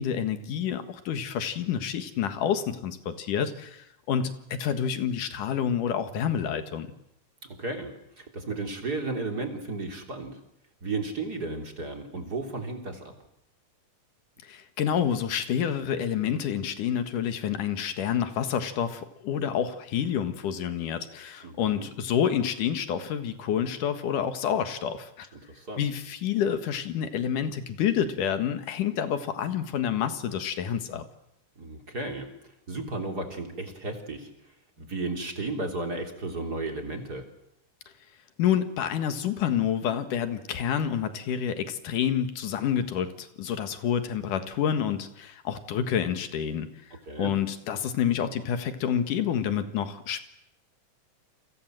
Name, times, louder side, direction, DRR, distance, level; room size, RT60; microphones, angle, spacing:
voice 1, 0.0-6.9 14.4-25.3 25.8-31.0 38.4-46.7 47.2-50.2, left 8 dB, 80° left, 10 dB, 3.2 m, -28 dB
voice 2, 7.6-10.4 10.8-13.1 21.4-21.9 25.3-25.9 31.6-32.3 32.7-34.3 34.8-37.3 47.1-47.3, right 3 dB, 30° right, 4 dB, 3.6 m, -34 dB
29.5 x 24.5 x 7.8 m, 0.77 s
omnidirectional pair, 3.6 m